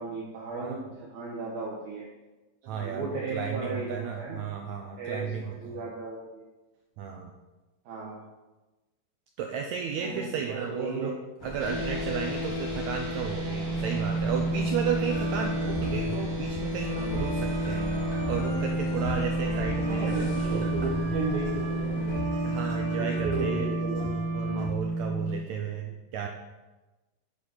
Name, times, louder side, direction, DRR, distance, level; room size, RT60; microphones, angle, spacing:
voice 1, 0.0-2.1 2.6-4.4 5.0-6.4 7.9-8.2 10.0-11.1 15.7-15.9 19.9-22.1 22.9-24.2, right 3 dB, 65° right, -5 dB, 2.6 m, -35 dB
voice 2, 2.6-5.8 7.0-7.3 9.4-11.1 11.4-20.9 22.4-23.8 24.3-26.3, right 7 dB, 90° right, 2 dB, 1.6 m, -34 dB
sound 1, 11.4-22.2, left 1 dB, 75° left, 3.3 m, -39 dB
sound 2, 11.6-25.3, right 1 dB, 25° right, 1.1 m, -31 dB
sound 3, 15.1-24.6, equal, 30° left, 2.7 m, -36 dB
9.2 x 8.1 x 4.0 m, 1.1 s
omnidirectional pair, 4.0 m